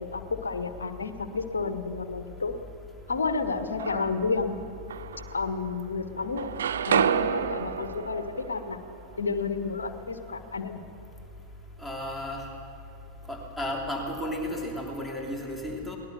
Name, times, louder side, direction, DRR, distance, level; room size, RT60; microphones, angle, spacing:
voice 1, 0.0-2.5 3.1-4.6 5.3-6.5 6.8-8.8 9.2-10.8, left 4 dB, 70° left, 8 dB, 1.4 m, -31 dB
sound 1, 3.5-4.3 4.9-5.9 6.2-10.1, right 8 dB, 65° right, 0.7 m, -30 dB
voice 2, 11.8-12.5 13.3-16.0, left 1 dB, 5° left, -2 dB, 3.1 m, -33 dB
22.0 x 19.0 x 6.8 m, 2.8 s
figure-of-eight pair, 90°, 0 cm